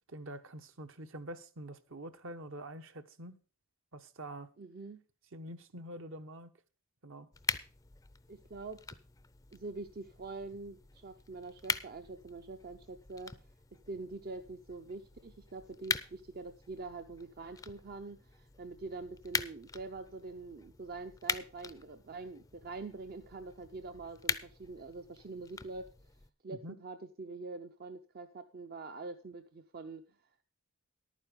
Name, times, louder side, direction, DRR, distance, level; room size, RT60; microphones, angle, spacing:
voice 1, 0.1-3.4 3.9-4.5 5.3-6.5 7.0-7.3 26.5-26.8, right 1 dB, 60° right, 1.0 m, -46 dB
voice 2, 4.6-5.0 8.3-8.8 9.5-13.4 13.8-25.9 26.4-30.0, right 3 dB, 45° right, 0.6 m, -45 dB
sound 1, 7.3-26.3, left 5 dB, 15° left, 0.5 m, -42 dB
11.5 x 9.3 x 5.1 m
head